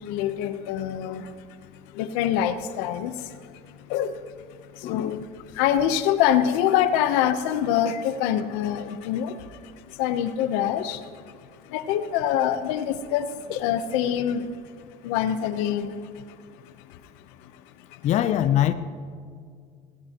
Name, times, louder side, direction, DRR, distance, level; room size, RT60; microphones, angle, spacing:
voice 1, 0.0-1.6 1.9-3.4 3.7-4.2 4.6-5.3 5.5-11.2 11.7-14.5 15.0-16.4 16.6-17.0 17.4-17.5 17.9-18.0, left 10 dB, 90° left, 11 dB, 0.9 m, -25 dB
voice 2, 4.8-5.1 7.9-8.0 18.0-18.7, left 11 dB, 50° left, 12 dB, 0.5 m, -23 dB
20.0 x 17.5 x 3.0 m, 2.2 s
cardioid pair, 120°, 16 cm